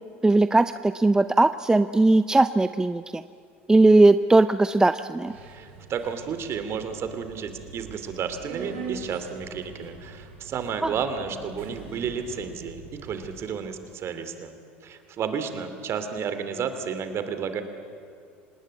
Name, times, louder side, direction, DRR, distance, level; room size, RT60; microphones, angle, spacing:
voice 1, 0.2-3.2 3.7-5.3, right 2 dB, 10° right, 13 dB, 0.5 m, -19 dB
Subway metro underground, 5.3-13.4, right 4 dB, 75° right, 4.3 m, -43 dB
voice 2, 5.5-14.5 14.8-17.6, right 6 dB, 45° right, 9 dB, 2.6 m, -32 dB
26.5 x 19.5 x 8.4 m, 2.4 s
hypercardioid pair, 75°, 6 cm